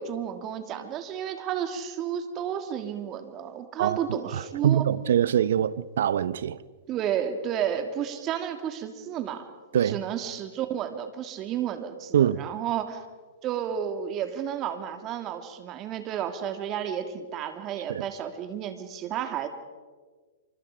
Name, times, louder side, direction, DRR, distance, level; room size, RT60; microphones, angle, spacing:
voice 1, 0.0-4.8 6.9-9.4 9.7-13.0 13.4-19.5, right 9 dB, 30° right, 2.9 m, -32 dB
voice 2, 4.3-6.6 9.7-10.0 12.1-12.4 17.9-18.0, right 10 dB, 65° right, 1.0 m, -24 dB
28.0 x 26.0 x 5.2 m
hypercardioid pair, 115°, 0 cm